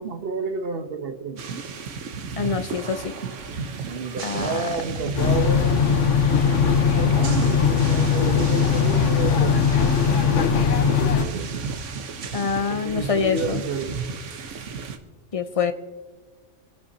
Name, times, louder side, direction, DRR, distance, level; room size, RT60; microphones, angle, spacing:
voice 1, 0.0-1.4 3.9-9.7 10.1-11.6 12.7-14.2, right 3 dB, 55° right, 7 dB, 1.2 m, -31 dB
sound 1, 1.4-15.0, right 5 dB, 85° right, 1.3 m, -33 dB
voice 2, 2.4-3.1 4.2-4.6 12.3-13.6 15.3-15.7, left 6 dB, 35° left, 9 dB, 0.7 m, -25 dB
sound 2, 5.2-11.2, left 7 dB, 85° left, 1.3 m, -20 dB
26.5 x 11.0 x 2.8 m, 1.3 s
omnidirectional pair, 1.2 m